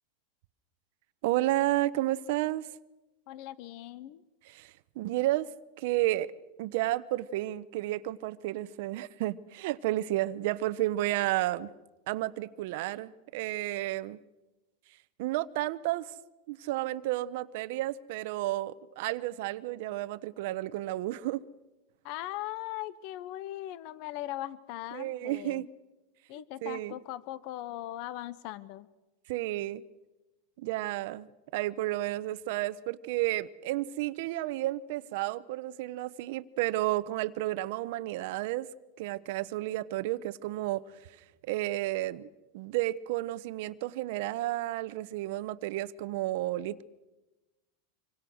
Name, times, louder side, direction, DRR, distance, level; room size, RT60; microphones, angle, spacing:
voice 1, 1.2-2.7 4.4-5.5 5.8-6.3 6.6-11.7 12.1-14.2 15.2-16.1 16.5-21.4 24.9-25.7 26.3-27.0 29.3-29.8 30.6-38.7 39.0-40.8 41.4-42.3 42.5-46.8, right 16 dB, 60° right, 0.8 m, -32 dB
voice 2, 3.3-4.2 22.0-25.6 26.3-28.9, left 14 dB, 50° left, 0.8 m, -39 dB
25.5 x 25.0 x 6.4 m
supercardioid pair, 155°, 0 cm